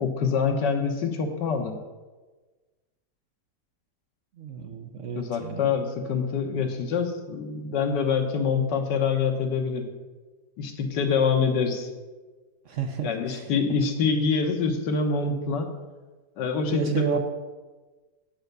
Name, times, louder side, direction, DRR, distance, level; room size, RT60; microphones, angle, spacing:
voice 1, 0.0-1.8 5.1-9.9 10.6-11.9 13.0-15.7 16.4-17.2, left 5 dB, 85° left, 5 dB, 1.7 m, -25 dB
voice 2, 4.4-5.7 12.7-13.5 15.2-15.3 16.7-17.2, right 6 dB, 55° right, 5 dB, 0.9 m, -31 dB
8.1 x 5.8 x 6.6 m, 1.3 s
omnidirectional pair, 1.8 m